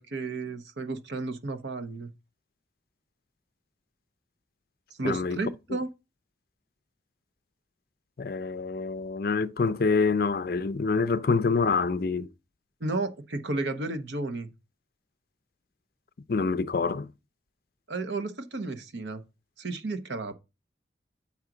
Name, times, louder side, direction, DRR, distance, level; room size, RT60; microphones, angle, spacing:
voice 1, 0.0-2.1 5.0-5.9 12.8-14.5 17.9-19.2 19.6-20.3, right 3 dB, 75° right, 0.9 m, -33 dB
voice 2, 5.0-5.4 8.2-12.3 16.3-17.1, left 4 dB, 55° left, 0.4 m, -26 dB
7.2 x 5.9 x 3.8 m
head